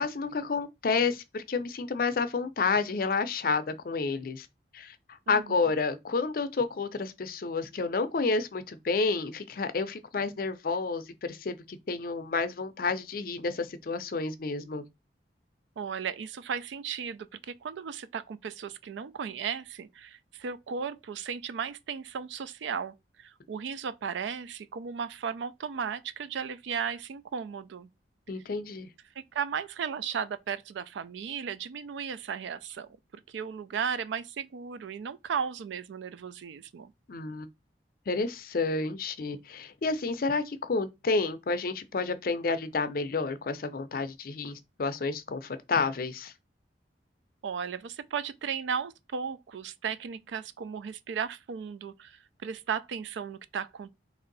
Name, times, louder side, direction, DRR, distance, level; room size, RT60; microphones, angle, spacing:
voice 1, 0.0-4.5 4.7-5.0 5.3-14.8 28.3-28.9 37.1-37.5 38.1-46.3, left 4 dB, 50° left, 0.5 m, -30 dB
voice 2, 5.3-5.6 15.8-27.9 29.2-32.9 33.3-36.9 47.4-53.9, right 7 dB, 85° right, 0.4 m, -35 dB
3.1 x 2.6 x 3.9 m
head